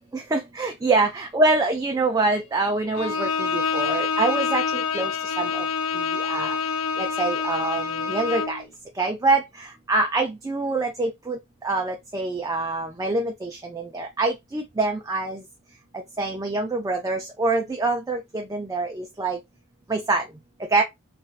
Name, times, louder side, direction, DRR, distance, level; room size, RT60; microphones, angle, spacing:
voice 1, 0.1-5.1 5.4-5.6 5.9-6.6 7.0-8.6 9.0-11.4 11.6-15.4 16.2-19.4 19.9-20.2 20.7-20.8, right 3 dB, 15° right, 0.3 m, -25 dB
Bowed string instrument, 3.0-8.6, left 5 dB, 80° left, 0.5 m, -26 dB
3.3 x 2.4 x 2.4 m
head